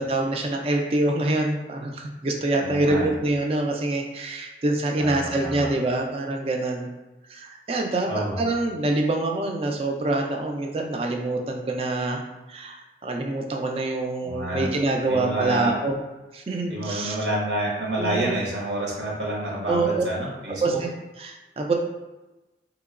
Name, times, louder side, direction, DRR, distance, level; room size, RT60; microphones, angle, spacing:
voice 1, 0.0-6.9 7.3-12.2 12.5-12.8 13.0-16.0 16.3-17.2 18.0-18.4 19.7-20.0 20.5-20.9 21.2-21.7, right 2 dB, 35° right, 2 dB, 0.4 m, -25 dB
voice 2, 2.6-3.1 5.0-5.7 8.1-8.4 14.2-14.7 15.1-15.7 16.7-20.8, right 1 dB, 75° right, -4 dB, 1.1 m, -28 dB
3.6 x 2.9 x 2.4 m, 1.1 s
head